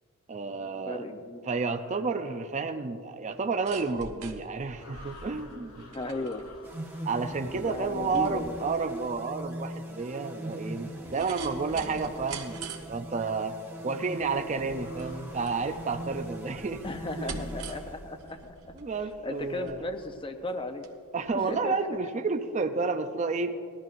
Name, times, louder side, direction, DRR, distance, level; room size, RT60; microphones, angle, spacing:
voice 1, 0.3-1.0 1.5-5.9 7.0-16.8 17.2-17.4 18.8-19.8 21.1-23.6, right 4 dB, 30° right, 7 dB, 0.4 m, -31 dB
voice 2, 0.9-1.6 5.9-6.5 7.5-8.6 16.8-18.7 19.2-20.9 21.3-21.7, left 1 dB, 25° left, 7 dB, 0.7 m, -36 dB
sound 1, 1.7-2.1 4.7-7.9 9.9-11.8 14.7-16.9 18.9-20.1, left 3 dB, 80° left, 3.0 m, -54 dB
sound 2, 3.3-20.9 21.2-21.3, right 4 dB, 75° right, 1.2 m, -46 dB
sound 3, 6.6-18.5, right 1 dB, 10° right, 1.1 m, -41 dB
19.5 x 13.5 x 2.6 m, 2.3 s
head